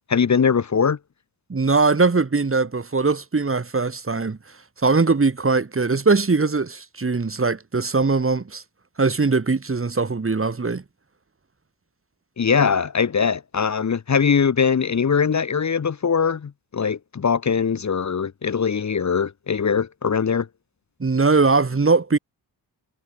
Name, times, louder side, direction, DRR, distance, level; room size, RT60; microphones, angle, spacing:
voice 1, 0.1-1.0 12.4-20.5, left 6 dB, 40° left, 1.2 m, -21 dB
voice 2, 1.5-4.4 4.8-8.6 9.0-10.8 21.0-22.2, right 4 dB, 30° right, 3.3 m, -20 dB
wide cardioid pair, 100°, 42 cm